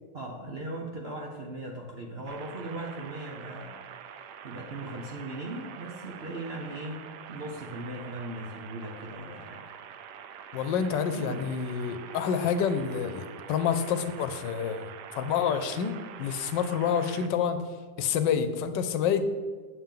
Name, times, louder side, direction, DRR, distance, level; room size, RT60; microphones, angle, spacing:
voice 1, 0.1-3.8 4.0-9.6 10.5-10.7 11.1-11.4, right 2 dB, 50° right, 1 dB, 0.7 m, -39 dB
sound 1, 2.3-17.3, right 8 dB, 75° right, 1.2 m, -45 dB
voice 2, 10.5-17.6 18.0-19.2, left 7 dB, 80° left, 10 dB, 1.3 m, -28 dB
8.7 x 7.3 x 3.7 m, 1.5 s
omnidirectional pair, 1.9 m